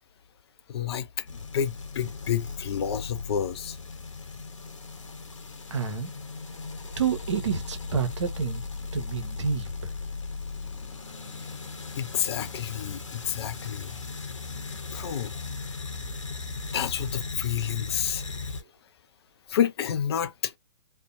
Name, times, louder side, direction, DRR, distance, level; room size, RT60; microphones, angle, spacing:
voice 1, 0.7-3.8 11.4-11.5 12.0-14.0 14.9-15.4 16.7-18.2 19.5-20.5, left 9 dB, 55° left, 0.5 m, -29 dB
sound 1, 1.3-18.6, left 4 dB, 80° left, 0.8 m, -37 dB
voice 2, 5.7-6.1 7.0-8.6 8.9-9.7, right 6 dB, 70° right, 0.8 m, -28 dB
2.6 x 2.1 x 2.4 m
figure-of-eight pair, 120°, 16 cm